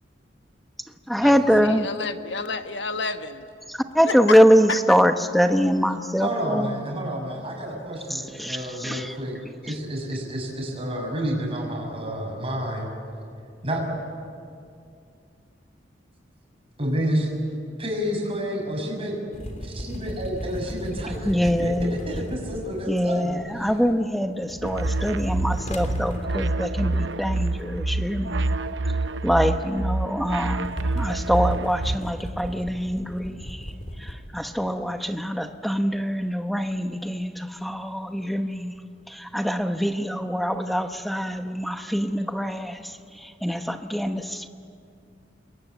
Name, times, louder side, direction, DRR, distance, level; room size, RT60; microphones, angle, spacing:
voice 1, 1.1-1.9 3.7-6.8 8.1-9.2 9.7-9.8 21.2-21.9 22.9-28.4 29.2-38.8 39.1-44.5, equal, ahead, 1.0 m, -24 dB
voice 2, 1.6-3.5 4.0-4.4 4.7-4.8, left 4 dB, 75° left, 1.5 m, -30 dB
voice 3, 6.2-12.9 13.6-13.8 16.8-17.3 17.8-19.2 19.6-23.7, equal, 30° right, 6.5 m, -30 dB
sound 1, 19.3-24.0 24.4-34.1, equal, 40° left, 3.2 m, -37 dB
sound 2, 24.6-32.0, right 2 dB, 85° right, 0.9 m, -27 dB
28.0 x 22.5 x 9.3 m
head